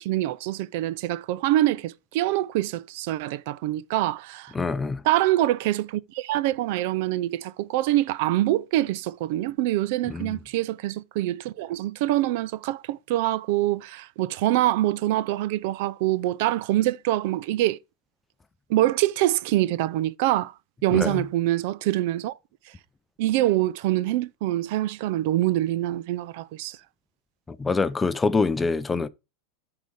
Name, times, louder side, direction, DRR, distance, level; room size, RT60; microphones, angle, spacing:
voice 1, 0.0-4.5 5.0-17.8 18.7-20.5 20.8-22.3 23.2-26.8, right 15 dB, 60° right, 0.5 m, -25 dB
voice 2, 4.5-5.0 10.1-10.4 20.9-21.2 27.5-29.1, left 4 dB, 15° left, 0.6 m, -25 dB
9.2 x 4.9 x 5.1 m
hypercardioid pair, 120°, 0 cm